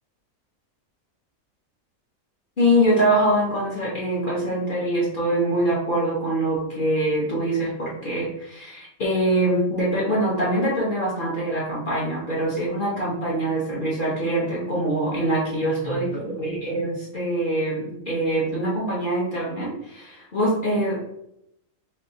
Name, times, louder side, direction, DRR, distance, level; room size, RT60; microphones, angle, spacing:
voice 1, 2.6-20.1 20.3-21.2, right 1 dB, 40° left, -6 dB, 1.0 m, -24 dB
3.5 x 3.2 x 2.8 m, 0.77 s
omnidirectional pair, 1.4 m